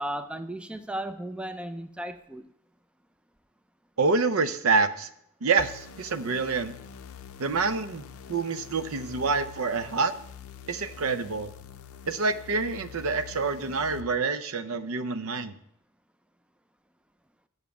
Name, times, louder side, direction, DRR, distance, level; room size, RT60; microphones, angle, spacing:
voice 1, 0.0-2.5, right 1 dB, 5° right, 10 dB, 0.4 m, -35 dB
voice 2, 4.0-5.1 5.4-6.7 7.4-10.2 10.7-11.5 12.1-15.5, right 4 dB, 75° right, 12 dB, 0.6 m, -27 dB
sound 1, 5.6-14.0, left 7 dB, 85° left, 0.5 m, -46 dB
7.1 x 6.5 x 6.9 m, 0.74 s
head